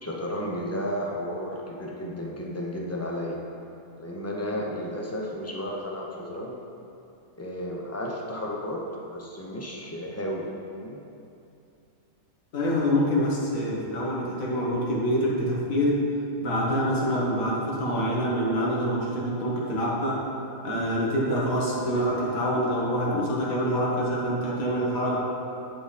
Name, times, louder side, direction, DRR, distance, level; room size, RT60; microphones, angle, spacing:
voice 1, 0.0-3.4 4.0-6.7 7.4-11.1, equal, 25° left, -2 dB, 0.3 m, -33 dB
voice 2, 12.5-16.0 16.4-20.2 20.6-25.2, equal, 75° left, -4 dB, 1.7 m, -26 dB
10.5 x 3.8 x 4.1 m, 2.7 s
omnidirectional pair, 1.5 m